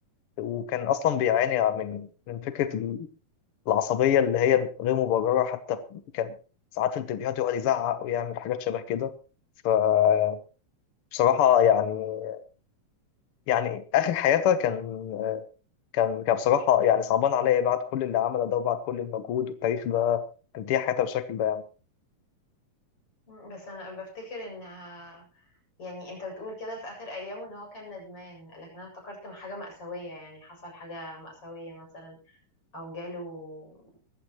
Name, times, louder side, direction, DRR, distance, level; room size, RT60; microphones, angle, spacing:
voice 1, 0.4-3.1 3.7-6.3 6.8-9.1 9.6-10.4 11.1-12.4 13.5-15.4 15.9-20.2 20.5-21.6, left 10 dB, 70° left, 1.3 m, -25 dB
voice 2, 23.3-25.5 25.8-32.4 32.7-33.8, left 1 dB, 40° left, 8.7 m, -41 dB
21.0 x 14.5 x 3.1 m
omnidirectional pair, 3.8 m